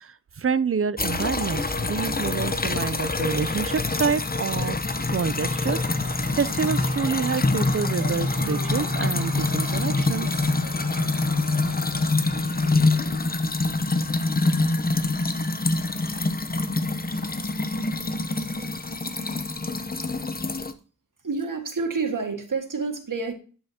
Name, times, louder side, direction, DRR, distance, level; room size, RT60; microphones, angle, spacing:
voice 1, 0.0-4.8 5.1-10.5, right 6 dB, 45° right, 0.5 m, -28 dB
sound 1, 1.0-20.7, left 2 dB, 25° left, 0.8 m, -25 dB
sound 2, 5.6-12.1, right 4 dB, 90° right, 2.4 m, -41 dB
sound 3, 6.3-13.2, left 2 dB, 60° left, 1.3 m, -44 dB
voice 2, 21.2-23.3, right 4 dB, 70° right, 1.9 m, -28 dB
11.5 x 5.6 x 2.8 m
wide cardioid pair, 55°, 33 cm